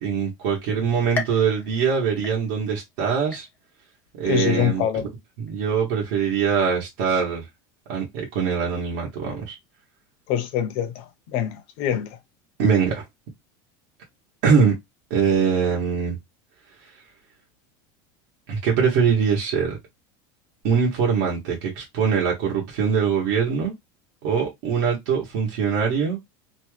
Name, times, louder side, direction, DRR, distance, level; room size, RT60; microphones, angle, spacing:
voice 1, 0.0-3.5 4.2-5.1 5.4-7.4 7.9-9.5 12.6-13.0 14.4-14.7 15.1-16.1 18.5-19.8 20.6-23.7 24.2-26.2, right 6 dB, 60° right, 1.2 m, -22 dB
sound 1, 1.1-2.9 3.3-3.9 4.4-4.5 5.5-5.6, left 5 dB, 15° left, 0.4 m, -35 dB
voice 2, 4.2-5.0 10.3-12.1, left 9 dB, 50° left, 0.7 m, -24 dB
2.9 x 2.3 x 3.1 m
supercardioid pair, 170°, 12 cm